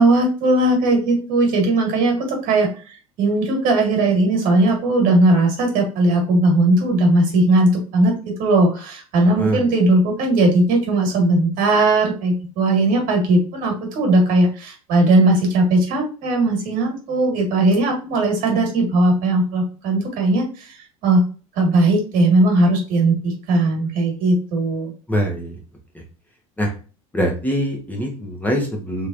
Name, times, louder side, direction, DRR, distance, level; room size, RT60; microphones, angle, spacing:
voice 1, 0.0-2.7 3.2-20.7 21.0-21.2 21.6-24.9, right 2 dB, 55° right, 1 dB, 1.7 m, -18 dB
voice 2, 25.1-25.6 25.9-26.0 26.6-26.7 27.1-29.1, equal, 10° left, 0 dB, 0.9 m, -23 dB
3.2 x 3.0 x 2.5 m, 0.36 s
hypercardioid pair, 75°, 17 cm